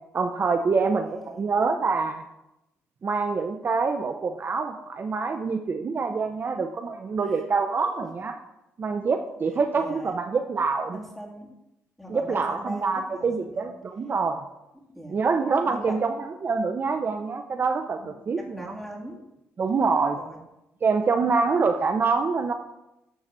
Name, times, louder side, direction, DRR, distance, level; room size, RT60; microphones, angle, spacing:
voice 1, 0.1-2.2 3.0-8.4 8.8-11.0 12.1-14.4 15.1-16.1 16.4-18.7 19.6-20.2 20.8-22.5, right 4 dB, 45° right, 6 dB, 0.7 m, -25 dB
voice 2, 1.0-1.5 7.2-7.4 7.8-7.9 9.7-10.2 10.9-11.5 12.0-13.7 14.7-15.2 15.7-16.0 18.0-19.2 20.2-20.4, equal, 5° left, -1 dB, 2.6 m, -41 dB
11.0 x 4.0 x 7.4 m, 0.90 s
cardioid pair, 90°, 5 cm